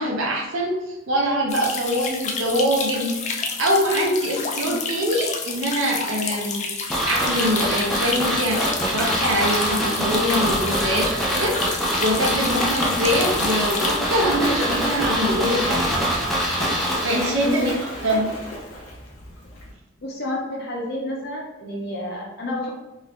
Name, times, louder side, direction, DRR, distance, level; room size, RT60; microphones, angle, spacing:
voice 1, 0.0-11.6 12.0-15.9 17.0-17.7 18.0-18.3, equal, 70° right, -1 dB, 0.9 m, -24 dB
sound 1, 1.5-14.0, left 4 dB, 35° left, 0.4 m, -30 dB
sound 2, 6.9-17.8 18.1-18.2, equal, ahead, 0.7 m, -24 dB
Splash splatter, 11.8-19.7, left 1 dB, 80° left, 0.9 m, -34 dB
voice 2, 17.4-17.8 20.0-22.7, left 1 dB, 50° left, -1 dB, 0.8 m, -30 dB
3.6 x 2.8 x 3.2 m, 1.0 s
head